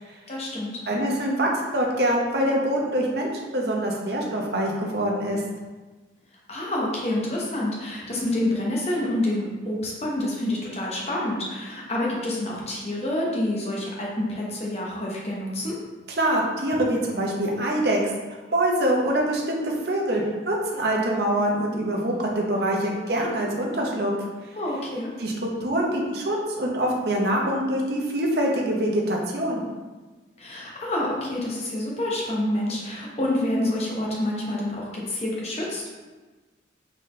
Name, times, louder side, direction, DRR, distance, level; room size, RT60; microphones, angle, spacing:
voice 1, 0.3-0.7 6.5-15.8 24.5-25.1 30.4-35.9, left 1 dB, 35° left, -4 dB, 0.9 m, -28 dB
voice 2, 0.9-5.4 16.2-18.0 18.5-24.1 25.2-29.6, right 1 dB, 60° right, -1 dB, 0.8 m, -24 dB
4.1 x 3.9 x 3.2 m, 1.3 s
head